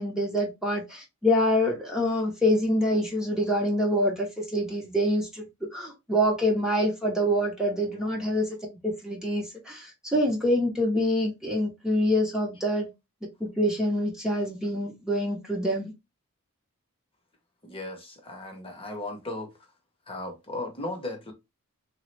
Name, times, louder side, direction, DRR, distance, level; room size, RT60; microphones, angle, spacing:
voice 1, 0.0-5.4 5.7-8.5 8.8-12.9 13.4-15.9, equal, 5° right, 0.7 m, -26 dB
voice 2, 17.6-19.5 20.1-21.3, left 2 dB, 25° left, 0.8 m, -36 dB
3.3 x 2.0 x 3.2 m
head